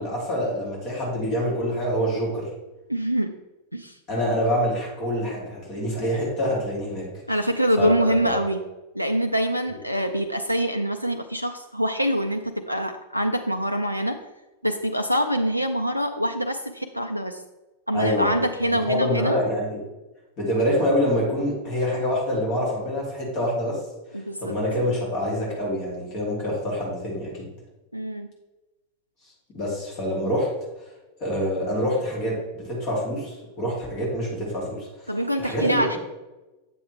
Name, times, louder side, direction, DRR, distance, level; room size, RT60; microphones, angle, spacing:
voice 1, 0.0-2.5 4.1-7.1 7.8-7.9 8.2-8.4 17.9-18.3 18.9-19.8 20.4-23.8 24.4-27.5 29.5-30.5 31.2-35.1 35.4-35.8, equal, 40° left, -4 dB, 3.0 m, -26 dB
voice 2, 2.9-3.3 3.7-4.0 7.3-8.6 8.9-14.2 14.6-17.4 17.9-19.4 24.1-24.5 27.9-28.3 35.1-36.0, equal, 90° right, 5 dB, 0.4 m, -25 dB
8.5 x 7.3 x 3.3 m, 1.1 s
figure-of-eight pair, 90°, 0 cm